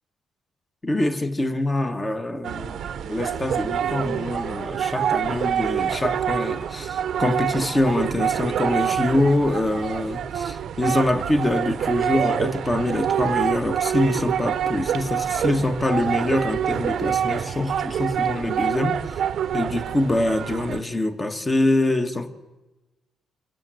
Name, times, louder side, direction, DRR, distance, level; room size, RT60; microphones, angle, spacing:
voice 1, 0.8-19.0 19.5-22.3, left 1 dB, 15° left, 1.5 m, -24 dB
sound 1, 2.4-20.8, right 9 dB, 55° right, 0.9 m, -26 dB
27.0 x 23.0 x 7.8 m
cardioid pair, 150°, 0 cm